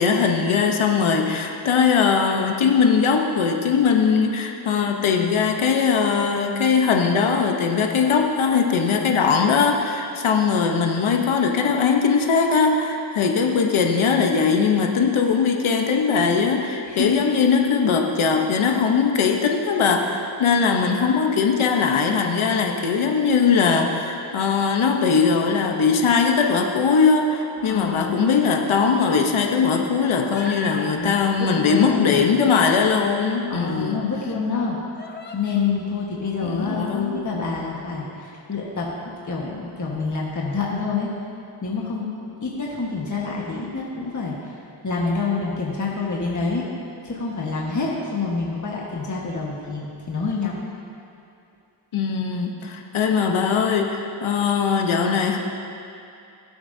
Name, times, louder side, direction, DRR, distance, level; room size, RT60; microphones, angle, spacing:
voice 1, 0.0-34.0 36.4-37.2 51.9-55.4, left 5 dB, 80° left, 2 dB, 1.0 m, -20 dB
voice 2, 16.9-17.2 27.6-28.3 31.0-32.2 33.5-34.8 35.3-38.9 39.3-41.1 41.6-42.1 42.4-44.6 44.8-46.7 47.0-50.6, left 4 dB, 40° left, -4 dB, 1.4 m, -27 dB
Human voice, 30.2-30.9 32.1-33.2 34.0-34.1 34.9-35.6, left 2 dB, 20° left, 0.8 m, -38 dB
17.0 x 7.8 x 2.7 m, 2.6 s
cardioid pair, 70°, 48 cm